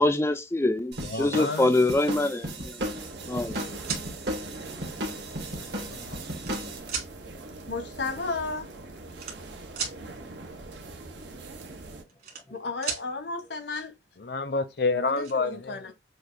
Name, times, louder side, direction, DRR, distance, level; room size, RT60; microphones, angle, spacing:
voice 1, 0.0-2.8 3.3-3.6, left 2 dB, 15° left, 0.3 m, -24 dB
sound 1, 0.9-6.8, equal, 70° right, 1.7 m, -35 dB
voice 2, 1.0-1.8 5.5-6.2 6.6-6.7 14.2-15.9, left 3 dB, 65° left, 0.7 m, -30 dB
sound 2, 2.8-12.0, right 2 dB, 90° right, 1.0 m, -43 dB
sound 3, 3.3-4.0 5.0-5.1 5.9-6.6 6.9-7.1 8.2-8.3 8.5-8.7 9.1-10.0 11.8-12.6 12.8-13.0 14.5-14.6 14.9-15.3, right 6 dB, 55° right, 1.9 m, -35 dB
voice 3, 7.7-8.7 10.0-10.1 12.5-13.9 14.9-15.9, left 3 dB, 80° left, 1.1 m, -34 dB
6.4 x 2.5 x 2.6 m
head